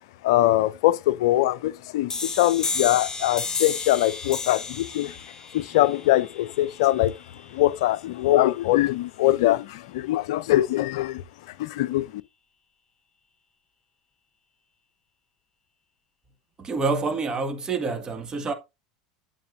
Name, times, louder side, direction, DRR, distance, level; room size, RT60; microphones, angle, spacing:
voice 1, 0.2-5.1 5.5-7.2 7.5-11.2 11.6-12.2, left 15 dB, 65° left, 0.5 m, -22 dB
sound 1, 2.1-7.5, left 4 dB, 20° left, 1.1 m, -33 dB
voice 2, 16.6-18.5, right 4 dB, 25° right, 1.7 m, -27 dB
9.1 x 7.6 x 2.6 m
hypercardioid pair, 80°, 3 cm